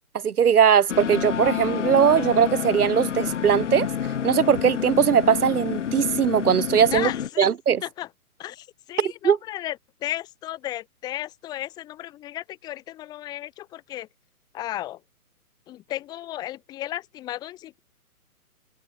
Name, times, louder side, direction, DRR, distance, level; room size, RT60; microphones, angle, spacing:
voice 1, 0.2-3.9 4.2-7.1 7.4-7.8 9.0-9.4, right 8 dB, 80° right, 1.4 m, -20 dB
sound 1, 0.9-7.3, left 8 dB, 55° left, 2.7 m, -28 dB
voice 2, 6.9-7.5 7.8-8.1 8.4-14.1 14.5-15.0 15.7-17.8, left 14 dB, 10° left, 1.3 m, -34 dB
hypercardioid pair, 165°, 45 cm